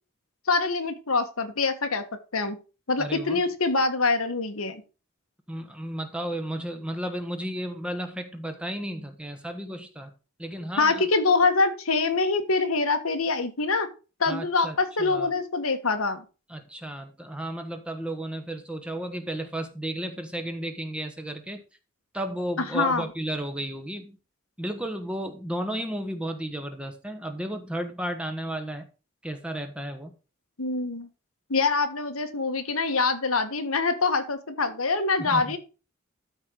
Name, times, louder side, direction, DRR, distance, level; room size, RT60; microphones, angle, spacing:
voice 1, 0.5-2.0 2.3-2.6 2.9-4.8 10.8-13.9 14.2-16.2 22.7-23.0 30.6-31.1 31.5-35.6, left 3 dB, 90° left, 7 dB, 1.4 m, -24 dB
voice 2, 3.0-3.4 5.5-10.1 10.4-11.0 14.3-15.3 16.5-21.6 22.1-24.2 24.6-28.8 29.2-30.1 35.2-35.6, right 1 dB, 5° right, 6 dB, 1.1 m, -33 dB
12.5 x 4.5 x 5.1 m, 0.32 s
head